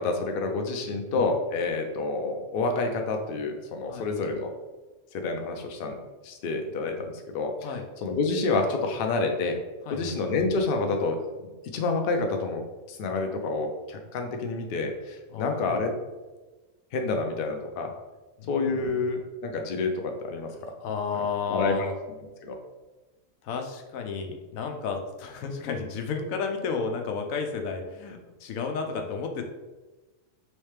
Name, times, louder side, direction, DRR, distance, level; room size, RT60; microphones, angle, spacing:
voice 1, 0.0-4.5 5.1-6.0 6.2-7.1 7.3-7.5 8.0-9.6 9.9-12.6 12.9-15.9 16.9-17.9 18.5-20.5 21.5-21.8 22.4-22.5, left 3 dB, 60° left, 4 dB, 0.6 m, -28 dB
voice 2, 0.8-1.1 3.9-4.1 7.6-7.9 9.9-10.2 15.3-15.8 18.4-19.0 20.8-21.9 23.4-29.4, left 5 dB, 85° left, 4 dB, 1.0 m, -32 dB
3.2 x 3.1 x 3.2 m, 1.2 s
omnidirectional pair, 1.4 m